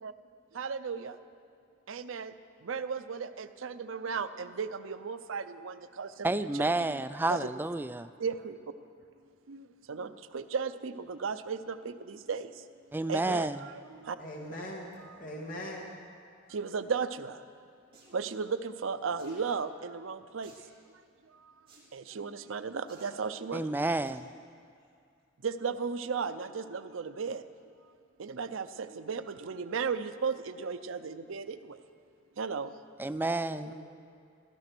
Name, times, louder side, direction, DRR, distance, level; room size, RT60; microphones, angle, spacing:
voice 1, 0.6-1.1 1.9-2.3 2.7-6.7 7.3-7.5 8.2-8.5 9.5-9.6 9.9-12.5 13.1-14.2 16.5-17.4 18.1-20.5 21.9-23.7 25.4-27.4 28.2-31.6 32.4-32.7, right 5 dB, 85° right, 11 dB, 0.6 m, -35 dB
voice 2, 6.2-8.1 12.9-13.6 23.5-24.3 33.0-33.7, right 2 dB, 10° right, 10 dB, 0.3 m, -30 dB
voice 3, 14.2-15.9 33.5-33.7, left 1 dB, 45° left, -2 dB, 1.7 m, -41 dB
sound 1, 17.9-18.2 19.2-19.4 20.4-20.7 21.7-21.9 22.9-23.1 24.0-24.3 24.8-24.9, right 3 dB, 25° right, 3.5 m, -57 dB
15.0 x 12.0 x 6.0 m, 2.4 s
head